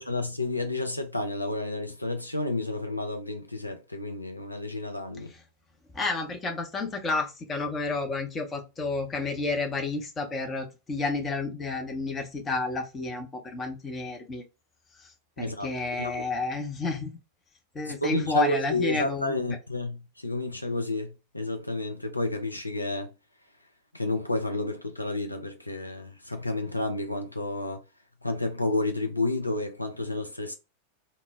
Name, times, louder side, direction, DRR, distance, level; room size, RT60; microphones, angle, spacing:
voice 1, 0.0-5.3 15.4-16.2 17.8-23.1 23.9-27.8 28.2-30.6, left 2 dB, 85° left, 0.3 m, -31 dB
voice 2, 5.9-14.4 15.0-15.1 15.4-17.2 17.7-19.3, left 3 dB, 20° left, 0.6 m, -30 dB
2.0 x 2.0 x 3.3 m
figure-of-eight pair, 90°, 0 cm